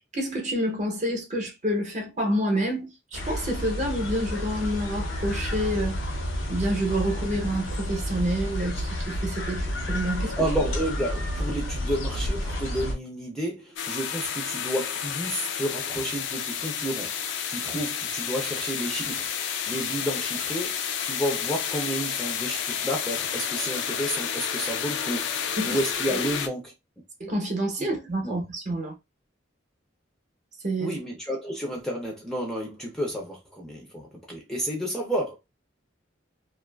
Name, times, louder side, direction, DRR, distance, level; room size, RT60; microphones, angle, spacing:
voice 1, 0.1-6.2 6.5-10.4 25.6-25.8 26.1-26.2 27.2-28.9 30.6-31.0, right 1 dB, 40° right, 0.7 m, -28 dB
sound 1, 3.1-12.9, equal, 85° left, 0.7 m, -30 dB
voice 2, 10.4-19.3 19.7-26.7 27.8-27.9 28.2-28.4 30.8-35.4, equal, 5° left, 0.5 m, -31 dB
sound 2, 13.8-26.5, left 8 dB, 70° left, 0.4 m, -30 dB
2.5 x 2.3 x 2.2 m
head